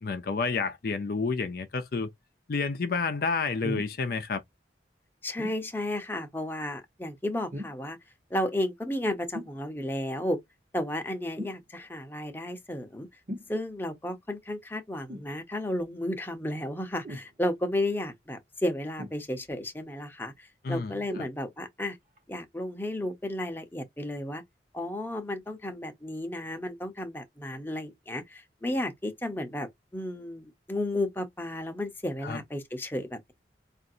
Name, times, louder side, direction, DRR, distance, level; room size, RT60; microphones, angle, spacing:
voice 1, 0.0-2.1 2.5-4.4 20.6-21.0 32.2-32.4, left 4 dB, 55° left, 0.5 m, -29 dB
sound 1, 3.6-4.0 5.4-5.6 7.5-7.9 9.3-9.6 11.4-11.6 13.3-13.5 15.1-15.3 17.0-17.3 19.0-19.5 21.1-21.4 22.2-22.3, equal, 45° right, 1.1 m, -38 dB
voice 2, 5.2-8.0 8.3-10.4 10.7-13.1 13.5-22.0 22.3-24.4 24.7-33.3, left 1 dB, 10° left, 0.8 m, -33 dB
5.0 x 2.5 x 2.7 m
head